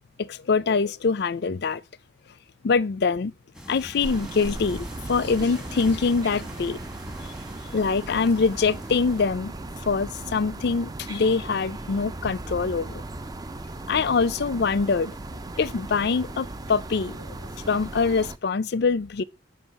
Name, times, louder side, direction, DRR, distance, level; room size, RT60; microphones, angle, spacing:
voice 1, 0.2-1.8 2.6-3.3 3.7-6.8 7.7-9.5 9.9-13.0 13.9-15.1 15.6-17.2 17.7-19.2, left 4 dB, 55° left, 0.4 m, -24 dB
sound 1, 3.5-9.3, equal, 5° right, 1.2 m, -44 dB
sound 2, 4.0-18.4, right 2 dB, 20° right, 0.4 m, -37 dB
8.1 x 5.1 x 5.4 m
head